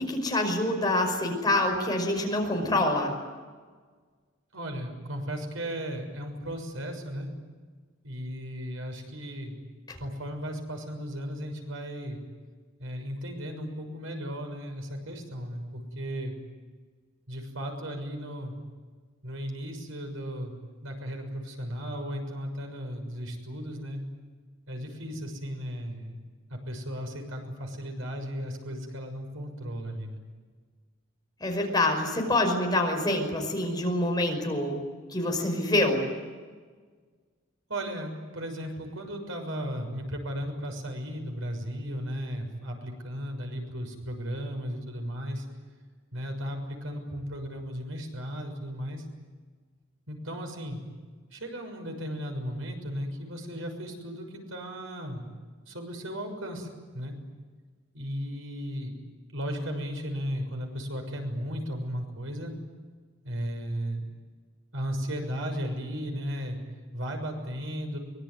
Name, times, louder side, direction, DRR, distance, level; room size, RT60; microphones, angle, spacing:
voice 1, 0.0-3.1 9.9-10.0 31.4-34.8 35.1-36.0, left 1 dB, 20° left, 2 dB, 5.5 m, -26 dB
voice 2, 4.5-7.3 8.0-9.5 10.0-12.2 12.8-16.3 17.3-18.5 19.2-20.5 20.8-24.0 24.7-26.2 26.5-30.2 37.7-45.4 46.1-49.0 50.1-50.8 51.3-55.2 55.7-56.7 56.9-57.1 57.9-59.0 59.3-62.5 63.2-64.0 64.7-66.6 66.9-68.0, equal, 90° right, 4 dB, 6.6 m, -35 dB
24.0 x 23.0 x 9.6 m, 1.5 s
head